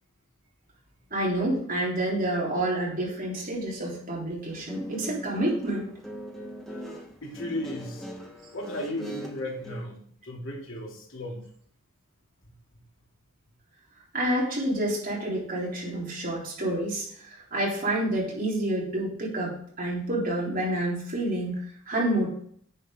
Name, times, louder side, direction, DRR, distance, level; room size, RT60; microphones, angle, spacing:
voice 1, 1.1-5.9 14.1-22.3, right 1 dB, 45° right, -4 dB, 3.7 m, -28 dB
Guitar, 4.5-9.8, equal, ahead, 1.5 m, -40 dB
voice 2, 7.2-8.1 8.5-11.5 12.4-12.5, left 1 dB, 75° left, -2 dB, 2.9 m, -35 dB
9.8 x 6.8 x 3.8 m, 0.62 s
head